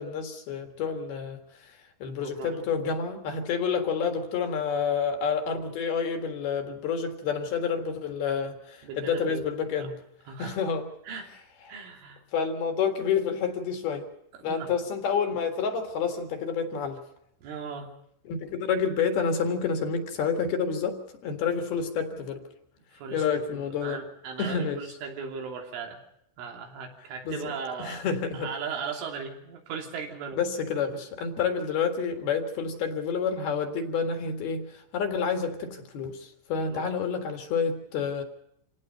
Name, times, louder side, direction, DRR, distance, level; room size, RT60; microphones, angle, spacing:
voice 1, 0.0-9.9 10.4-10.9 12.3-14.1 14.4-17.0 18.3-22.4 23.1-24.0 24.4-24.8 27.2-27.5 27.8-28.5 30.4-38.2, left 6 dB, 60° left, 5 dB, 3.4 m, -29 dB
voice 2, 2.1-2.6 8.8-9.4 9.8-9.9 10.3-10.6 11.0-11.3 11.7-12.2 14.4-14.7 17.4-17.9 22.9-26.0 26.4-28.1 28.3-30.5 36.6-36.9, right 6 dB, 80° right, 2 dB, 5.5 m, -38 dB
27.5 x 17.5 x 5.4 m, 0.75 s
omnidirectional pair, 5.5 m